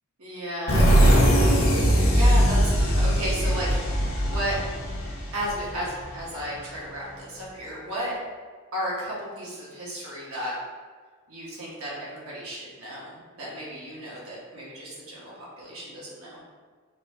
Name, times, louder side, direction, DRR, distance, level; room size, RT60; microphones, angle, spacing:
voice 1, 0.2-1.2 2.1-4.0 4.3-4.6 5.3-8.1 8.7-10.5 11.3-16.4, equal, 75° right, -6 dB, 1.4 m, -34 dB
sound 1, 0.7-6.2, equal, 85° left, 1.0 m, -20 dB
4.1 x 3.3 x 3.0 m, 1.5 s
head